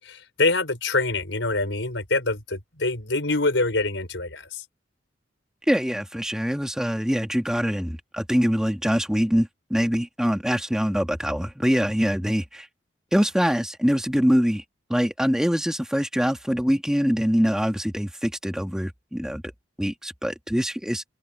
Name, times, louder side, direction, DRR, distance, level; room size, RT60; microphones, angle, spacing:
voice 1, 0.0-4.6, left 3 dB, 90° left, 5.0 m, -25 dB
voice 2, 5.7-12.7 13.1-14.6 14.9-19.4 19.8-21.0, equal, 5° right, 1.8 m, -24 dB
head